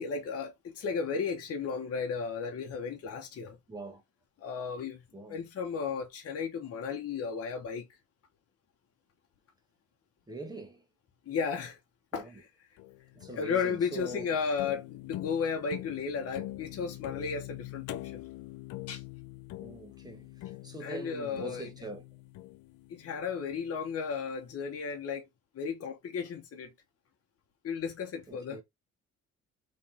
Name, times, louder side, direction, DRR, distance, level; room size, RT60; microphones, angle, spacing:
voice 1, 0.0-3.6 4.4-5.0 5.3-7.9 11.3-11.8 12.1-12.3 13.3-18.2 18.9-19.0 20.8-21.7 23.0-25.2 25.5-26.7 27.6-28.6, left 6 dB, 55° left, 1.1 m, -34 dB
voice 2, 3.7-4.0 5.1-5.4 10.3-10.9 12.1-12.4 13.1-14.4 19.6-22.0 28.3-28.6, right 2 dB, 15° right, 1.4 m, -43 dB
sound 1, 12.8-24.0, left 16 dB, 85° left, 0.5 m, -44 dB
3.4 x 3.2 x 4.3 m
cardioid pair, 90°, 30 cm